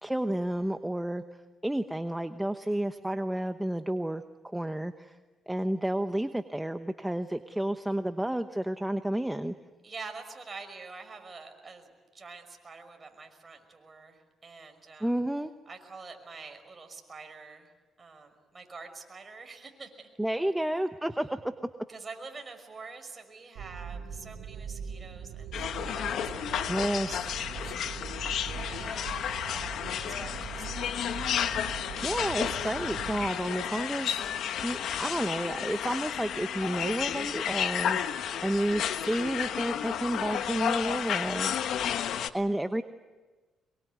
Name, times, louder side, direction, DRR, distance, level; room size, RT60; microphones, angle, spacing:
voice 1, 0.0-1.2 1.6-5.2 5.5-9.5 15.0-15.5 20.2-21.5 26.7-27.1 32.0-34.2 34.6-38.0 38.4-41.6 42.3-42.8, right 1 dB, 5° right, 8 dB, 1.0 m, -31 dB
voice 2, 9.8-15.1 15.7-17.7 18.0-20.1 21.9-27.8 28.7-31.3, right 4 dB, 30° right, 5 dB, 5.5 m, -47 dB
sound 1, 23.6-33.3, right 7 dB, 90° right, 2.3 m, -41 dB
sound 2, 25.5-42.3, left 9 dB, 75° left, 1.3 m, -32 dB
24.5 x 23.0 x 9.5 m, 1.3 s
cardioid pair, 90°, 0 cm